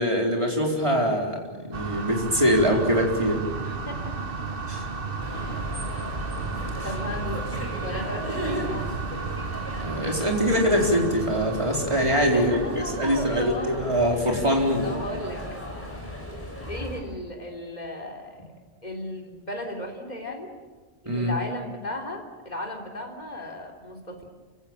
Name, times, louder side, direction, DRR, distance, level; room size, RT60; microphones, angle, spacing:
voice 1, 0.0-3.4 4.7-4.8 9.8-14.9 21.1-21.3, equal, 30° right, 0 dB, 4.3 m, -23 dB
sound 1, 1.7-14.0, right 4 dB, 60° right, 1.4 m, -34 dB
voice 2, 3.5-4.2 5.3-5.8 6.8-7.5 7.8-9.0 12.3-13.9 14.8-15.4 16.7-18.4 18.8-20.5 21.0-24.4, left 1 dB, 40° left, 2 dB, 3.6 m, -35 dB
sound 2, 5.2-17.0, equal, 10° left, 5.9 m, -36 dB
28.5 x 16.5 x 9.0 m, 1.4 s
omnidirectional pair, 1.1 m